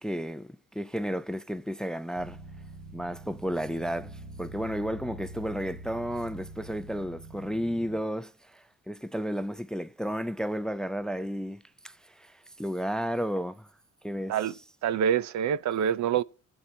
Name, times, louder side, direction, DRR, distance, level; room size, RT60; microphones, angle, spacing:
voice 1, 0.0-2.4 2.9-13.7 14.0-14.4, equal, ahead, 0.5 m, -33 dB
sound 1, 2.1-8.0, right 2 dB, 90° right, 2.1 m, -45 dB
voice 2, 14.8-16.2, right 9 dB, 70° right, 0.7 m, -26 dB
22.0 x 7.9 x 2.8 m
cardioid pair, 90°, 30 cm